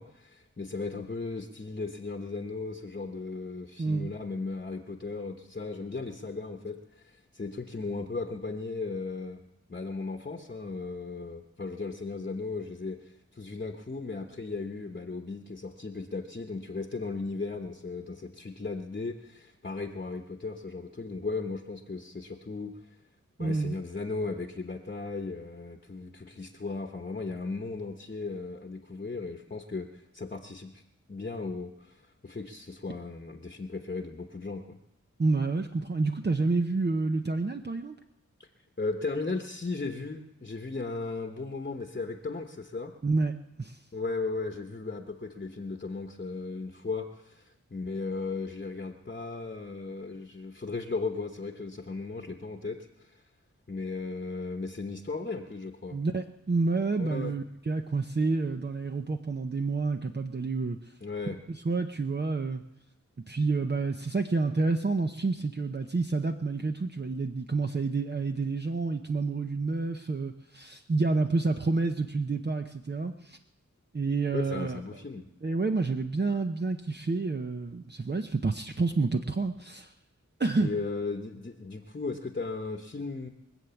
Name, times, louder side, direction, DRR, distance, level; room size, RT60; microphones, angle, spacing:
voice 1, 0.0-9.4 9.7-22.7 23.4-30.8 31.1-34.8 38.8-42.9 43.9-53.2 53.7-56.0 57.0-57.4 61.0-61.4 74.3-75.3 80.6-83.3, left 3 dB, 35° left, 4 dB, 1.1 m, -36 dB
voice 2, 23.4-23.8 35.2-38.0 43.0-43.3 43.6-43.8 55.9-60.8 61.5-62.6 63.3-73.4 73.9-74.8 75.4-79.9 80.4-80.7, right 3 dB, 35° right, 5 dB, 0.7 m, -29 dB
23.5 x 7.9 x 7.0 m, 0.87 s
wide cardioid pair, 80°, 29 cm